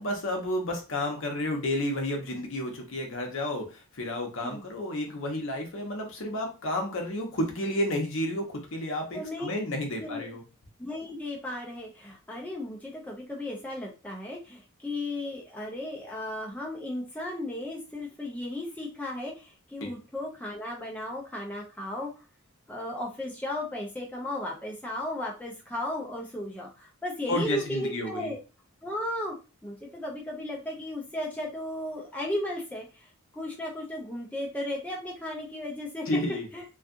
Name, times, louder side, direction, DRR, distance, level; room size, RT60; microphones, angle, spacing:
voice 1, 0.0-10.4 19.8-19.9 27.3-28.3 36.1-36.5, left 1 dB, 60° left, 2 dB, 0.8 m, -31 dB
voice 2, 9.1-9.5 9.9-10.3 10.8-22.1 22.7-28.4 28.8-29.4 29.6-36.2 36.5-36.6, left 1 dB, 5° left, -3 dB, 0.4 m, -35 dB
2.6 x 2.4 x 2.4 m, 0.31 s
head